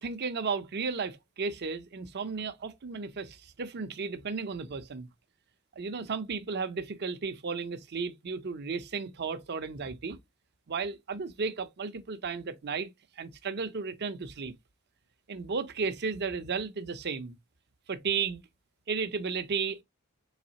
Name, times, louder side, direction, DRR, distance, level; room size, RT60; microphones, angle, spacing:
voice 1, 0.0-5.1 5.8-10.2 10.7-12.9 13.2-14.5 15.3-17.3 17.9-18.4 18.9-19.8, right 5 dB, 50° right, 0.6 m, -34 dB
4.0 x 3.4 x 2.8 m
head